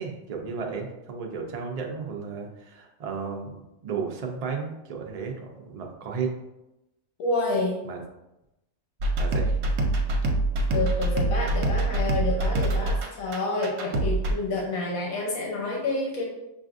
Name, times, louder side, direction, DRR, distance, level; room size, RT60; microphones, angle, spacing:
voice 1, 0.0-6.3 7.8-8.0 9.2-9.6, right 5 dB, 55° right, 1 dB, 0.4 m, -34 dB
voice 2, 7.2-7.7 10.7-16.2, left 2 dB, 80° left, -2 dB, 1.2 m, -28 dB
sound 1, 9.0-14.3, right 2 dB, 85° right, 1.1 m, -25 dB
5.7 x 2.5 x 2.5 m, 0.93 s
omnidirectional pair, 1.5 m